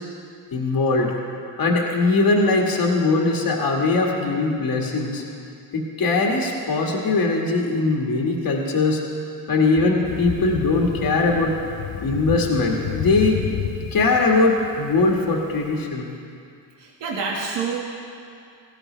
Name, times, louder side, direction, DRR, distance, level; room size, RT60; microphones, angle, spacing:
voice 1, 0.5-1.1 1.6-5.2 5.7-9.0 9.5-11.6 12.0-13.4 13.9-16.1, left 3 dB, 55° left, -1 dB, 2.0 m, -20 dB
Thunder, 10.0-15.7, left 9 dB, 70° left, 0.9 m, -31 dB
voice 2, 16.8-17.8, right 5 dB, 70° right, -3 dB, 1.9 m, -27 dB
17.5 x 14.5 x 3.3 m, 2.4 s
cardioid pair, 80°, 44 cm